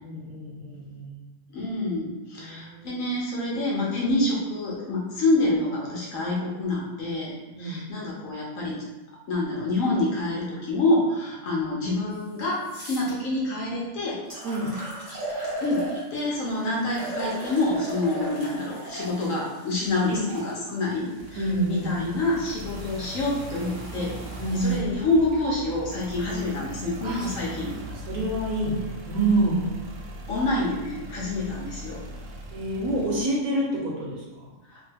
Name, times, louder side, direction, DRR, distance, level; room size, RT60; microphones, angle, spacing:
voice 1, 0.0-1.2 2.4-3.0 7.5-7.8 14.4-14.8 21.3-22.0 24.4-24.7 27.0-27.3 28.1-29.7 32.5-34.5, right 2 dB, 65° right, -3 dB, 1.0 m, -27 dB
voice 2, 1.5-7.3 7.6-8.8 9.3-14.2 15.6-24.1 24.5-27.7 30.3-32.0 34.7-34.8, left 2 dB, 65° left, -4 dB, 0.9 m, -27 dB
sound 1, 12.1-12.2 12.6-13.1 13.8-13.9 14.3-16.4 16.9-20.5 21.3-24.8, right 1 dB, 20° right, 0.7 m, -38 dB
sound 2, 21.2-33.2, equal, 90° right, 1.2 m, -39 dB
2.9 x 2.2 x 3.2 m, 1.1 s
omnidirectional pair, 1.9 m